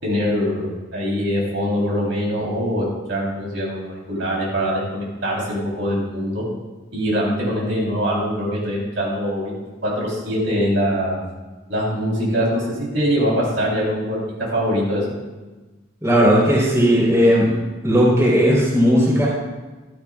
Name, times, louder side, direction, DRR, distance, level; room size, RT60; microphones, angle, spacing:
voice 1, 0.0-6.4 6.9-9.6 9.8-11.2 11.7-14.2 14.5-15.1, equal, 65° right, -4 dB, 3.5 m, -23 dB
voice 2, 16.0-17.5 17.8-19.3, equal, 15° right, -5 dB, 3.8 m, -16 dB
15.0 x 13.0 x 2.4 m, 1.2 s
head